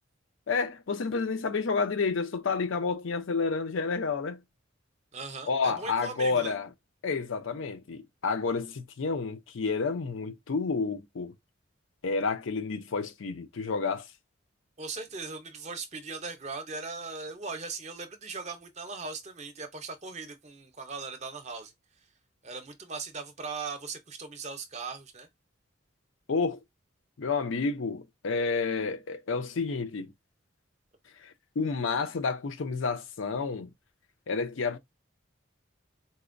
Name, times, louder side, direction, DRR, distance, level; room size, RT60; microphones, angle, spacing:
voice 1, 0.5-4.4 5.5-6.7 7.0-11.3 12.0-14.0 26.3-26.6 27.2-30.1 31.2-33.7 34.3-34.8, left 4 dB, 75° left, 0.5 m, -30 dB
voice 2, 5.1-6.5 14.8-21.7 22.4-25.3, right 4 dB, 35° right, 0.6 m, -39 dB
4.0 x 2.1 x 2.5 m
head